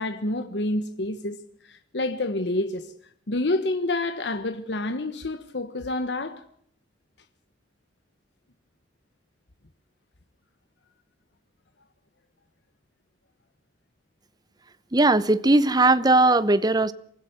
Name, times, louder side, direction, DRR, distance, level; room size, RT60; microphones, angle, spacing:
voice 1, 0.0-2.9 3.3-6.4, left 2 dB, 70° left, 1.3 m, -28 dB
voice 2, 14.9-16.9, right 2 dB, 20° right, 0.8 m, -19 dB
24.5 x 15.5 x 8.0 m
head